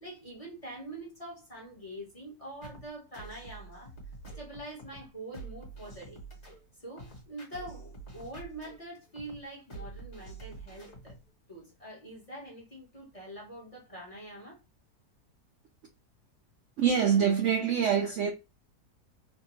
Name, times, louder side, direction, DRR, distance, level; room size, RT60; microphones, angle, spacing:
voice 1, 0.0-3.9 4.3-6.2 6.8-11.2 11.5-14.6, right 1 dB, 25° left, 1.0 m, -44 dB
sound 1, 2.6-11.3, right 3 dB, 45° left, 1.5 m, -47 dB
voice 2, 16.8-18.3, right 7 dB, 70° right, 0.7 m, -25 dB
3.3 x 2.2 x 3.0 m
omnidirectional pair, 1.7 m